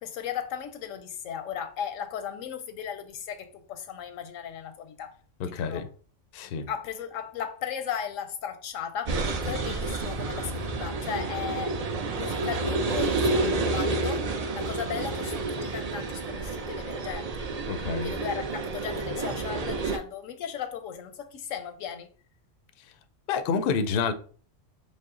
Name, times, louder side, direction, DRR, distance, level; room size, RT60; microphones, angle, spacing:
voice 1, 0.0-5.2 5.5-5.9 6.7-11.8 12.1-14.3 14.5-17.5 18.0-22.1, left 8 dB, 90° left, 1.0 m, -36 dB
voice 2, 5.4-5.9 6.3-6.7 17.7-18.1 23.3-24.1, left 5 dB, 60° left, 0.6 m, -28 dB
sound 1, 9.1-20.0, right 3 dB, 55° right, 0.4 m, -29 dB
5.4 x 2.0 x 3.7 m
omnidirectional pair, 1.3 m